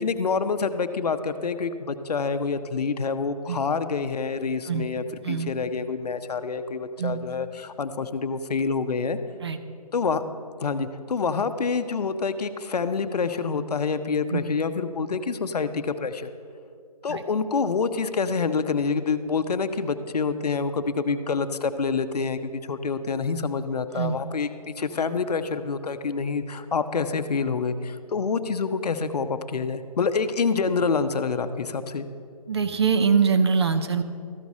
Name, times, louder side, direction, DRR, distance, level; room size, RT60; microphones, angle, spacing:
voice 1, 0.0-9.2 9.9-10.2 10.6-16.3 17.0-24.5 24.8-32.1, left 5 dB, 85° left, 10 dB, 0.7 m, -27 dB
voice 2, 32.5-34.0, right 6 dB, 45° right, 9 dB, 0.6 m, -23 dB
14.0 x 4.8 x 4.1 m, 2.3 s
hypercardioid pair, 165°, 20 cm